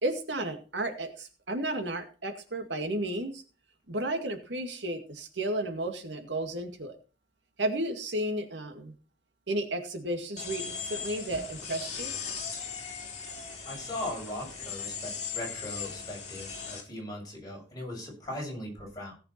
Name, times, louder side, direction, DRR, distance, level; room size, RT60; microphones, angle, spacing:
voice 1, 0.0-3.4 3.9-7.0 7.6-8.9 9.5-12.1, right 1 dB, 90° right, 6 dB, 2.1 m, -33 dB
sound 1, 10.4-16.8, left 6 dB, 40° left, 3.3 m, -38 dB
voice 2, 13.7-19.1, left 1 dB, 20° left, -2 dB, 7.3 m, -39 dB
17.5 x 6.9 x 4.4 m, 0.36 s
head